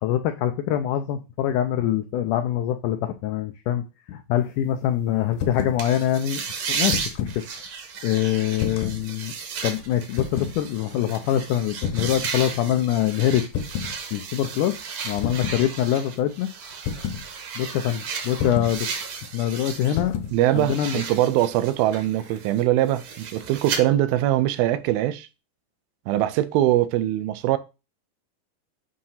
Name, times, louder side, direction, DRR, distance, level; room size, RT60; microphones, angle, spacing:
voice 1, 0.0-6.4 6.7-7.7 8.0-9.3 9.6-13.4 14.1-14.8 15.0-16.5 17.6-18.9 19.3-20.1 20.5-21.0, left 11 dB, 90° left, 1.8 m, -24 dB
sound 1, 5.3-5.8 6.7-7.4 8.6-9.1 10.1-10.6 11.8-12.2 13.5-14.0 15.2-15.6 16.9-17.3 18.4-18.8 20.0-20.4, left 7 dB, 70° left, 2.1 m, -29 dB
sound 2, 5.8-20.0 20.3-23.8, right 6 dB, 60° right, 1.8 m, -34 dB
voice 2, 20.3-25.3 26.1-27.6, right 14 dB, 85° right, 2.5 m, -22 dB
7.5 x 2.9 x 5.5 m
omnidirectional pair, 4.3 m